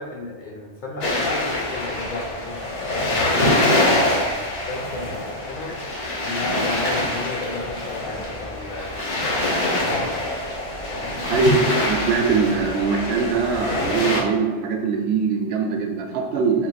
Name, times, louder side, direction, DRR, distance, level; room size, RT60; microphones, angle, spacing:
voice 1, 0.0-2.6 3.1-5.8 6.1-10.3 10.9-11.2, left 2 dB, 55° left, 0 dB, 0.6 m, -34 dB
sound 1, 1.0-14.2, left 1 dB, 80° left, 1.3 m, -24 dB
voice 2, 11.3-16.7, right 5 dB, 65° right, 2 dB, 0.8 m, -22 dB
3.7 x 2.5 x 4.0 m, 1.3 s
omnidirectional pair, 1.2 m